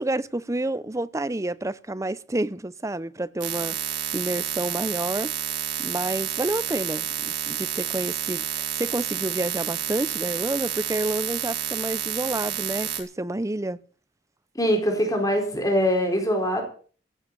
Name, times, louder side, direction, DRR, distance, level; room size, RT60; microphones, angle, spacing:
voice 1, 0.0-5.3 5.8-13.8, right 1 dB, 15° right, 0.6 m, -29 dB
sound 1, 3.4-13.0, right 9 dB, 85° right, 3.8 m, -30 dB
voice 2, 14.5-16.6, equal, 20° left, 4.5 m, -23 dB
16.5 x 7.9 x 8.5 m
head